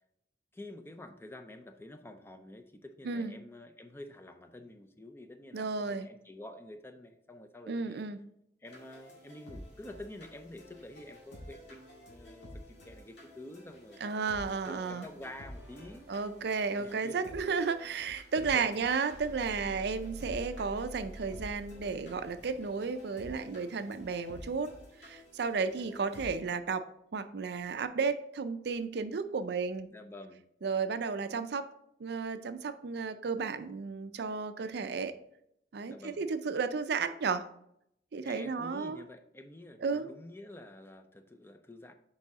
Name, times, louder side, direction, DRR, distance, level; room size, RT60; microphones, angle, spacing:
voice 1, 0.5-8.1 8.6-14.0 14.6-16.1 16.8-17.2 18.0-18.1 18.4-18.7 29.9-30.4 35.9-36.2 38.2-41.9, left 1 dB, 15° left, 7 dB, 0.5 m, -48 dB
voice 2, 3.0-3.4 5.5-6.1 7.7-8.2 14.0-15.0 16.1-24.7 25.0-26.9 27.1-29.9 30.6-31.7 32.0-35.1 35.7-37.5 38.1-39.0 39.8-40.1, right 5 dB, 65° right, 11 dB, 0.4 m, -33 dB
sound 1, 8.7-26.3, equal, 85° left, 2.0 m, -51 dB
sound 2, 13.6-13.9 14.2-17.9 19.1-22.7, right 1 dB, 15° right, 0.8 m, -50 dB
6.7 x 4.8 x 3.6 m, 0.75 s
head